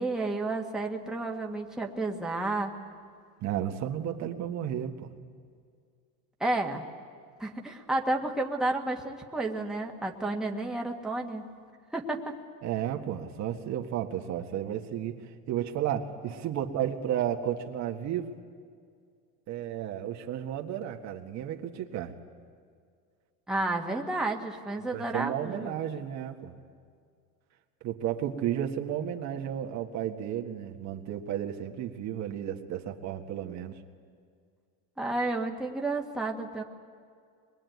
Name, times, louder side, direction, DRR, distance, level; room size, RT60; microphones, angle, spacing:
voice 1, 0.0-2.7 6.4-6.8 7.4-11.5 11.9-12.3 23.5-25.7 35.0-36.6, right 2 dB, ahead, 0 dB, 1.8 m, -31 dB
voice 2, 3.4-5.1 12.6-18.3 19.5-22.1 24.9-26.5 27.8-33.8, right 10 dB, 50° right, 4 dB, 1.7 m, -33 dB
24.0 x 22.0 x 9.4 m, 2.2 s
cardioid pair, 135°, 35 cm